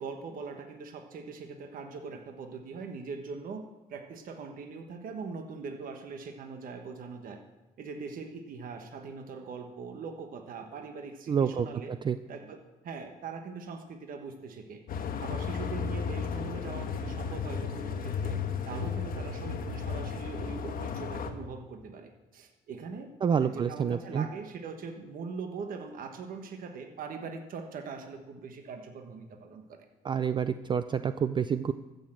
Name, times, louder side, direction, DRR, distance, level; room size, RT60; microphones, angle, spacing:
voice 1, 0.0-7.4 7.8-11.9 12.3-12.6 12.8-14.8 15.2-18.4 18.6-23.1 23.4-29.8, right 5 dB, 55° right, 5 dB, 1.4 m, -41 dB
voice 2, 11.3-12.2 23.2-24.3 30.0-31.7, right 7 dB, 30° right, 12 dB, 0.4 m, -28 dB
sound 1, 14.9-21.3, left 6 dB, 55° left, 1.3 m, -34 dB
14.5 x 6.6 x 7.5 m, 1.1 s
cardioid pair, 110°, 17 cm